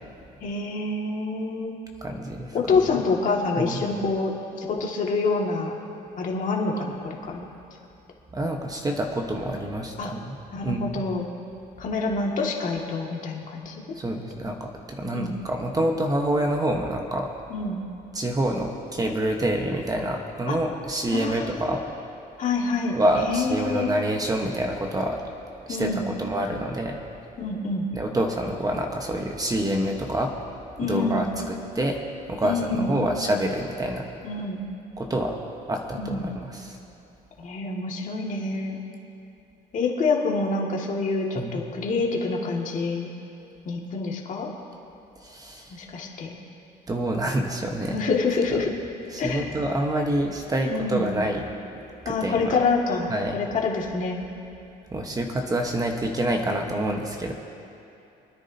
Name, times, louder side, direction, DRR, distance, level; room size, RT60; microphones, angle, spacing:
voice 1, 0.4-1.8 2.5-5.7 6.2-7.5 10.0-10.1 10.5-11.3 11.8-13.7 15.1-15.3 17.5-17.8 20.5-20.6 21.1-21.7 22.4-23.9 25.7-26.1 27.4-27.9 30.8-31.3 32.4-33.0 34.2-34.7 35.9-36.3 37.4-38.8 39.7-43.1 43.7-44.5 45.7-46.4 47.9-48.7 49.2-49.5 50.6-51.1 52.1-54.2, left 3 dB, 50° left, -1 dB, 2.1 m, -27 dB
voice 2, 2.0-2.6 3.6-3.8 8.3-10.4 10.6-11.0 14.0-17.3 18.1-21.8 22.9-25.2 25.7-27.0 27.9-30.3 30.8-32.0 32.3-34.1 35.0-35.4 35.7-36.8 41.3-41.6 45.2-45.8 46.9-48.0 48.5-48.7 49.1-51.5 52.0-52.6 53.1-53.4 54.9-57.3, right 1 dB, 20° right, 2 dB, 1.2 m, -27 dB
27.5 x 9.9 x 2.8 m, 2.8 s
cardioid pair, 110°, 17 cm